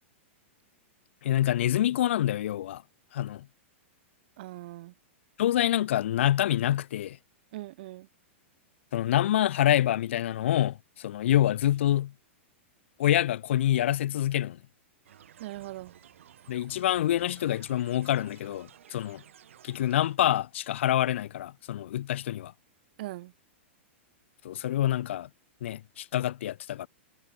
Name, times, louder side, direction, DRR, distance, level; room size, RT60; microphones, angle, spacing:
voice 1, 1.2-2.8 3.1-3.4 5.4-7.2 8.9-12.1 13.0-14.6 16.5-19.2 19.6-22.5 24.4-25.3 25.6-26.9, left 12 dB, 65° left, 0.6 m, -26 dB
voice 2, 4.4-4.9 7.5-8.1 15.4-15.9 23.0-23.3, right 17 dB, 45° right, 1.4 m, -40 dB
sound 1, 15.0-20.2, right 10 dB, 80° right, 3.0 m, -54 dB
supercardioid pair, 170°, 7 cm